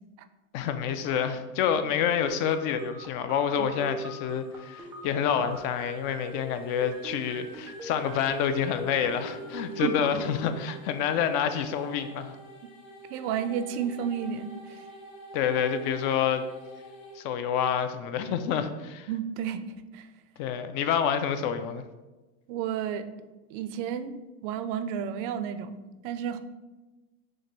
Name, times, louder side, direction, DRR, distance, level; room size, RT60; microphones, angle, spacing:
voice 1, 0.5-12.3 15.3-16.5 17.2-19.1 20.4-21.8, left 8 dB, 55° left, 9 dB, 0.4 m, -28 dB
sound 1, 2.3-10.3, right 2 dB, 5° right, 0.3 m, -43 dB
sound 2, 3.6-17.2, right 1 dB, 85° left, 1.3 m, -47 dB
voice 2, 13.1-14.8 19.1-19.6 19.9-20.1 22.5-23.0 23.5-26.4, right 8 dB, 65° right, 10 dB, 0.5 m, -32 dB
6.1 x 2.2 x 3.1 m, 1.1 s
supercardioid pair, 130°, 39 cm